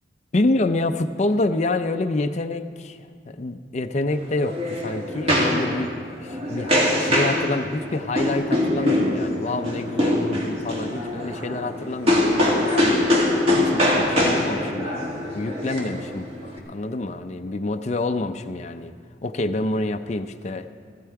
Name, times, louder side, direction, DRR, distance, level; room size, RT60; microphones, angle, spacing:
voice 1, 0.3-3.0 3.3-5.9 6.2-13.0 13.6-18.9 19.2-20.7, left 2 dB, 40° left, 7 dB, 0.5 m, -27 dB
sound 1, 4.1-16.6, left 1 dB, 35° right, 1.9 m, -23 dB
15.0 x 15.0 x 4.7 m, 2.1 s
head